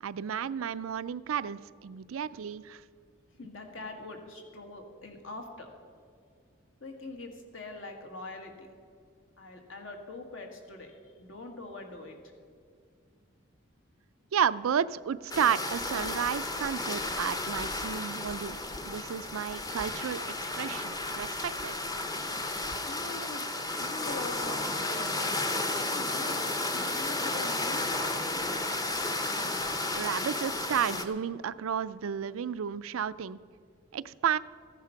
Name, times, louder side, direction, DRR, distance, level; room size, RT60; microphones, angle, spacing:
voice 1, 0.0-2.8 14.3-18.6 18.8-20.2 20.6-21.7 29.9-33.4 33.9-34.4, right 8 dB, 90° right, 15 dB, 0.4 m, -32 dB
voice 2, 3.4-5.7 6.8-8.7 9.4-12.2 22.9-25.3 25.7-26.5 26.7-28.2, left 2 dB, 70° left, 3 dB, 1.9 m, -43 dB
sound 1, 15.3-31.0, left 2 dB, 20° left, 0.7 m, -33 dB
14.5 x 10.0 x 5.8 m, 2.2 s
head